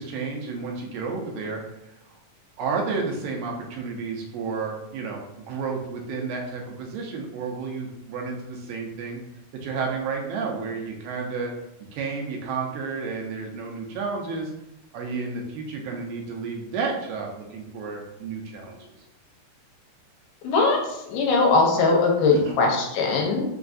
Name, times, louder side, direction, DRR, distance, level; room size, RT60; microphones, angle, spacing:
voice 1, 0.0-1.9 2.6-9.2 9.5-11.5 11.9-14.5 14.9-18.8 22.3-22.6, right 4 dB, 80° right, 0 dB, 2.3 m, -31 dB
voice 2, 20.4-20.8 21.1-23.4, left 3 dB, 80° left, 0 dB, 2.2 m, -20 dB
5.5 x 2.3 x 2.5 m, 0.85 s
omnidirectional pair, 4.0 m